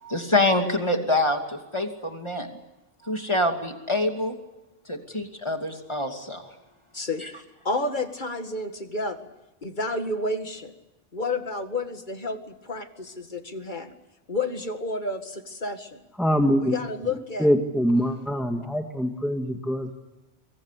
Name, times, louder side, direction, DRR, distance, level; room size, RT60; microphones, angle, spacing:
voice 1, 0.0-2.5 3.0-4.4 4.9-6.4, left 1 dB, 25° left, 4 dB, 2.7 m, -25 dB
voice 2, 6.9-9.3 9.6-10.7 11.1-13.9 14.3-16.0 16.6-17.5, left 2 dB, 40° left, 7 dB, 2.1 m, -30 dB
voice 3, 16.2-16.8 17.4-20.0, equal, ahead, 3 dB, 1.9 m, -24 dB
24.5 x 23.5 x 8.4 m, 0.98 s
omnidirectional pair, 1.2 m